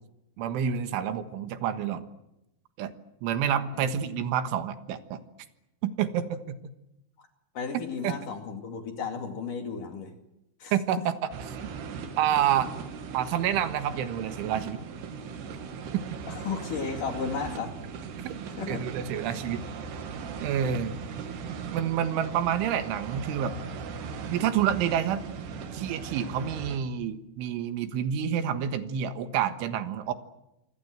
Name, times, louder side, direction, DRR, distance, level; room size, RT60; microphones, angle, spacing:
voice 1, 0.4-2.0 2.8-2.9 3.2-5.2 5.8-6.6 8.0-8.2 10.7-11.2 12.2-12.7 13.1-14.8 18.2-18.3 18.7-19.6 20.4-20.9 21.7-23.6 24.3-25.2 25.7-30.1, right 9 dB, 80° right, 10 dB, 3.9 m, -28 dB
voice 2, 7.6-10.1 10.6-11.0 12.6-12.7 16.3-17.8 18.6-18.9, left 5 dB, 50° left, 5 dB, 3.5 m, -34 dB
sound 1, 11.3-26.8, right 6 dB, 65° right, 4.0 m, -38 dB
26.5 x 25.5 x 7.9 m, 0.87 s
omnidirectional pair, 5.5 m